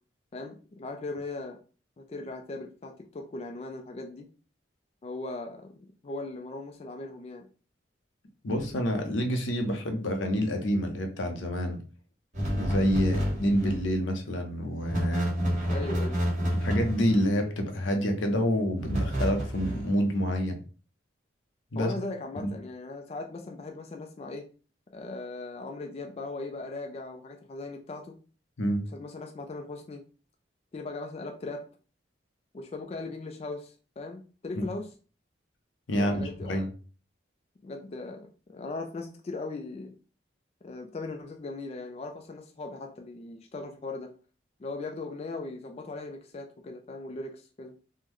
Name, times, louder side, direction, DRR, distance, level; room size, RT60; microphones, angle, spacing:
voice 1, 0.3-1.6 2.0-4.3 5.0-5.7 6.0-7.5 13.0-13.2 15.7-16.2 21.8-24.5 24.9-28.2 28.9-30.0 30.7-31.7 32.5-34.9 35.9-36.7 37.6-38.2 38.5-39.9 40.6-44.1 44.6-47.7, left 3 dB, 35° left, 0.3 m, -38 dB
voice 2, 8.4-11.8 12.5-15.3 16.5-20.6 21.7-21.9 22.4-22.5 28.6-28.8 35.9-36.7, equal, 90° left, 0.7 m, -28 dB
sound 1, 12.3-13.9 14.8-17.4 18.8-19.9, equal, 40° right, 1.3 m, -29 dB
3.6 x 2.1 x 3.1 m
head